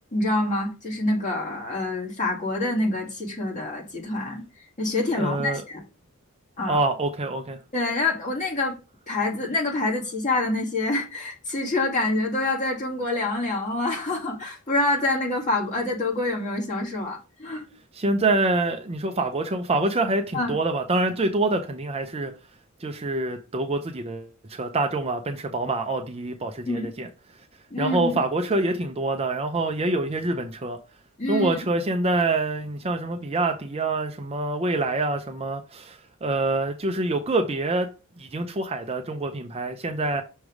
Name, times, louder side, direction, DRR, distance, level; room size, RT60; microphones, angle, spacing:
voice 1, 0.1-5.8 6.6-6.8 7.7-8.8 9.1-17.6 20.3-20.6 26.7-26.9 27.7-28.2 31.2-31.6, left 2 dB, 35° left, 2.1 m, -26 dB
voice 2, 5.2-5.6 6.7-7.6 17.9-22.3 22.8-27.1 27.8-30.8 31.3-37.9 38.2-40.2, right 2 dB, 25° right, 0.5 m, -26 dB
6.3 x 3.3 x 4.7 m
head